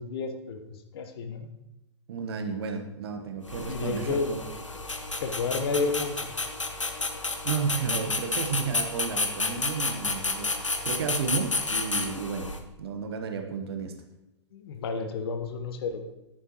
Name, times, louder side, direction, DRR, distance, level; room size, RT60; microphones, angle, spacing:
voice 1, 0.0-1.5 3.6-4.3 4.7-4.8 5.2-6.3 14.5-16.0, left 4 dB, 55° left, 7 dB, 1.2 m, -31 dB
voice 2, 2.1-4.4 7.4-12.5 12.8-13.9, right 5 dB, 55° right, 6 dB, 1.2 m, -32 dB
sound 1, 3.4-12.6, left 3 dB, 90° left, 1.0 m, -31 dB
10.5 x 9.2 x 3.0 m, 0.92 s
figure-of-eight pair, 110°, 15 cm